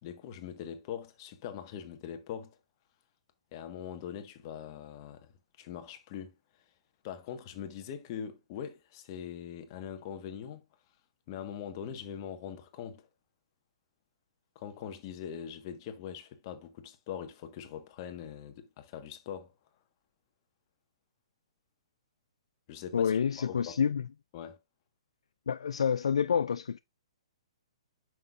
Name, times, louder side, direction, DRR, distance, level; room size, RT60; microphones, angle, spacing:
voice 1, 0.0-2.6 3.5-6.3 7.0-10.6 11.3-13.1 14.5-19.5 22.7-23.7 24.3-24.6, left 8 dB, 40° left, 1.4 m, -42 dB
voice 2, 22.9-24.0 25.5-26.8, left 7 dB, 70° left, 0.3 m, -28 dB
9.3 x 6.1 x 2.5 m
figure-of-eight pair, 120°, 3 cm